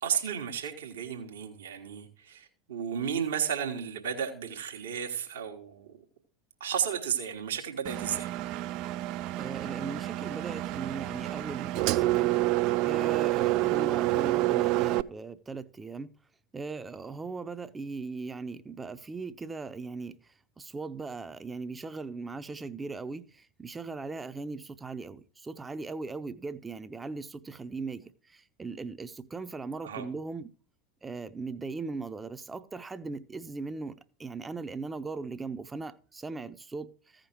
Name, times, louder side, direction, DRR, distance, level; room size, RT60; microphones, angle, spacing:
voice 1, 0.0-6.0 6.6-8.3 29.8-30.1, right 8 dB, 65° right, 1.3 m, -33 dB
Engine, 7.9-15.0, right 17 dB, 50° right, 0.3 m, -28 dB
voice 2, 9.4-12.4 12.8-16.1 16.5-20.2 20.6-30.5 31.0-37.3, right 4 dB, 15° right, 0.6 m, -39 dB
15.0 x 5.2 x 4.5 m
figure-of-eight pair, 80°, 0 cm